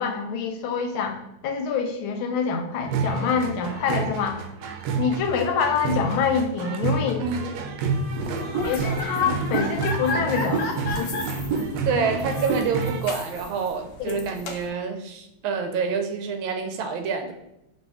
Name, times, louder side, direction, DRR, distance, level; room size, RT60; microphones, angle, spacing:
voice 1, 0.0-4.4 5.0-7.2 8.6-10.7 11.0-11.1 11.9-12.1 14.0-14.2, left 6 dB, 85° left, 4 dB, 1.5 m, -26 dB
sound 1, 2.8-13.0, right 4 dB, 75° right, 1.1 m, -29 dB
sound 2, 8.2-14.7, left 2 dB, 70° left, 1.3 m, -33 dB
voice 2, 11.9-17.3, right 5 dB, 90° right, 6 dB, 1.4 m, -27 dB
5.2 x 2.8 x 3.5 m, 0.83 s
omnidirectional pair, 2.2 m